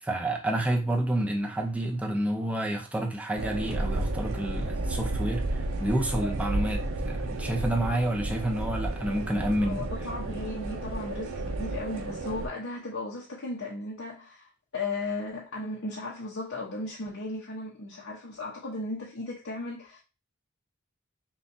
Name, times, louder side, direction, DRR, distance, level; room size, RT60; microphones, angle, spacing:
voice 1, 0.0-9.8 10.3-10.4, right 1 dB, 5° right, 0.7 m, -29 dB
sound 1, 3.4-12.5, right 2 dB, 80° right, 0.6 m, -32 dB
voice 2, 9.6-14.5 14.7-20.0, left 2 dB, 65° left, 0.9 m, -36 dB
5.6 x 2.5 x 2.7 m
head